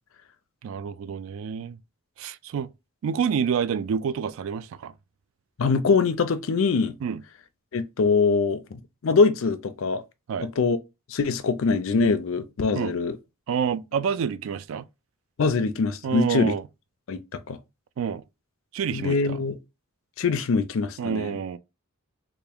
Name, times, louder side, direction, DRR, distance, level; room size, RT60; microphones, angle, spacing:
voice 1, 0.6-1.8 2.2-2.7 3.0-4.9 7.0-7.2 10.3-10.5 12.7-12.9 13.5-14.8 16.0-16.6 18.0-18.2 18.7-19.4 21.0-21.6, right 7 dB, 65° right, 0.3 m, -28 dB
voice 2, 5.6-6.9 7.7-10.0 10.4-10.8 11.1-13.2 15.4-16.5 17.1-17.6 18.9-19.6 20.2-21.3, left 4 dB, 65° left, 0.4 m, -23 dB
3.4 x 2.5 x 3.4 m
head